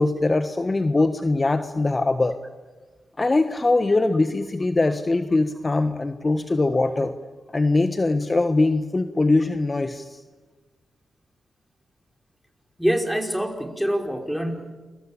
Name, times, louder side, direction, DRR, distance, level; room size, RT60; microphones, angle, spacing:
voice 1, 0.0-2.4 3.2-7.1 7.5-10.2, left 2 dB, 35° left, 9 dB, 1.4 m, -22 dB
voice 2, 12.8-14.7, equal, ahead, 4 dB, 5.0 m, -25 dB
28.5 x 23.0 x 8.7 m, 1.3 s
supercardioid pair, 45°, 0 cm